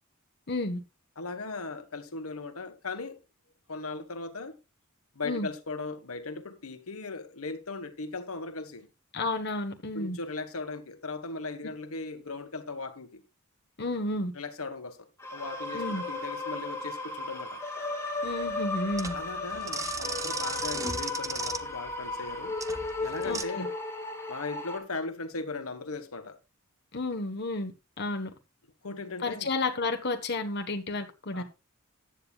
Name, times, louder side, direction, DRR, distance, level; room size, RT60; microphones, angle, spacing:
voice 1, 0.5-0.8 5.2-5.5 9.1-10.2 13.8-14.3 15.7-16.0 18.2-19.2 23.3-23.7 26.9-28.3 29.2-31.4, left 2 dB, 50° left, 1.4 m, -31 dB
voice 2, 1.2-3.2 3.7-4.5 5.1-8.9 9.9-13.2 14.3-17.6 19.1-22.6 23.0-23.7 24.3-26.4 28.8-29.5 31.3-31.4, left 3 dB, 75° left, 1.5 m, -38 dB
sound 1, 15.2-24.8, left 3 dB, 15° left, 3.0 m, -35 dB
sound 2, 18.3-23.4, right 4 dB, 15° right, 0.8 m, -36 dB
14.5 x 10.5 x 2.4 m
head